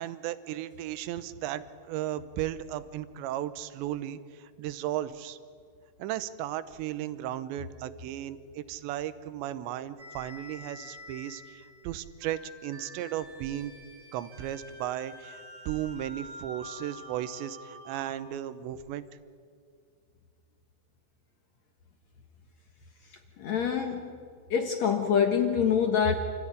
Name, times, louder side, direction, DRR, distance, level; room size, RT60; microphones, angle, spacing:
voice 1, 0.0-5.4 6.0-13.7 14.1-19.0, right 12 dB, 80° right, 14 dB, 3.1 m, -35 dB
sound 1, 10.0-18.2, equal, 40° right, 3.5 m, -47 dB
voice 2, 23.4-24.1 24.5-26.1, left 7 dB, 75° left, 4 dB, 1.6 m, -25 dB
28.0 x 15.5 x 9.9 m, 2.2 s
omnidirectional pair, 5.3 m